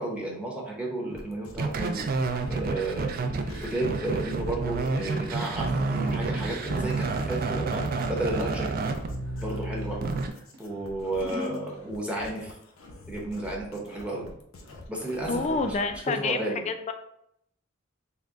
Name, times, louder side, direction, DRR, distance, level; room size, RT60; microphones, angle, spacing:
voice 1, 0.0-2.0 2.5-3.3 3.6-8.7 9.4-10.0 10.6-12.6 13.1-14.3 14.9-15.6 16.2-16.6, right 1 dB, 5° right, -3 dB, 0.7 m, -32 dB
sound 1, 1.1-16.0, left 2 dB, 75° left, 0.6 m, -46 dB
sound 2, 1.5-10.3, right 3 dB, 45° right, 0.3 m, -29 dB
Scissors, 3.8-10.0 10.5-11.7, right 1 dB, 65° right, 0.9 m, -44 dB
voice 2, 15.3-16.4 16.7-16.9, left 4 dB, 35° left, 7 dB, 0.3 m, -28 dB
3.7 x 2.1 x 3.5 m, 0.72 s
head